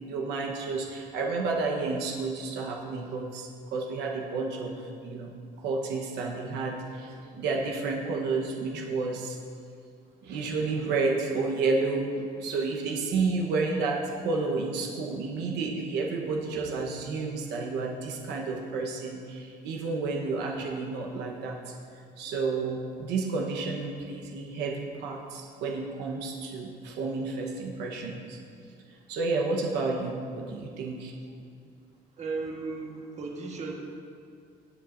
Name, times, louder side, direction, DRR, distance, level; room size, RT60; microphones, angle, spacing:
voice 1, 0.1-9.4 10.2-21.6 22.2-28.4 29.1-31.1, right 3 dB, 85° right, 0 dB, 1.1 m, -31 dB
voice 2, 32.1-33.7, right 4 dB, 40° right, 0 dB, 1.4 m, -37 dB
18.5 x 7.0 x 2.6 m, 2.3 s
cardioid pair, 110°, 17 cm